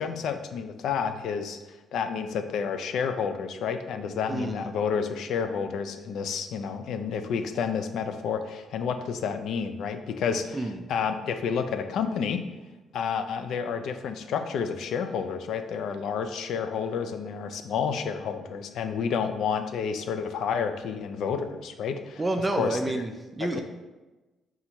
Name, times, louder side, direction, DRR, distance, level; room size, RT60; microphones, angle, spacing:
voice 1, 0.0-12.4 12.9-22.2 22.6-23.0 23.4-23.6, left 6 dB, 75° left, 8 dB, 0.3 m, -30 dB
voice 2, 4.3-4.7 10.5-10.8 22.2-23.6, right 2 dB, 20° right, 5 dB, 0.3 m, -29 dB
4.3 x 2.4 x 3.9 m, 1.1 s
cardioid pair, 90°, 0 cm